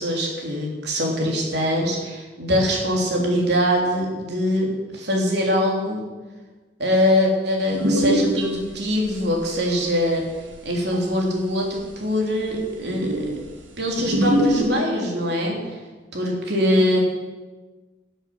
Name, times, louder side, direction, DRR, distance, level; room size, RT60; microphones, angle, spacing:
voice 1, 0.0-6.0 6.8-10.2 10.6-13.3 13.8-15.6 16.1-17.0, equal, 60° right, -1 dB, 3.4 m, -23 dB
sound 1, 7.7-9.5 9.7-11.0 11.7-11.8 12.1-12.2 12.4-12.5 12.9-13.5 14.0-14.7, equal, 75° right, 1.8 m, -23 dB
13.0 x 7.9 x 7.9 m, 1.3 s
head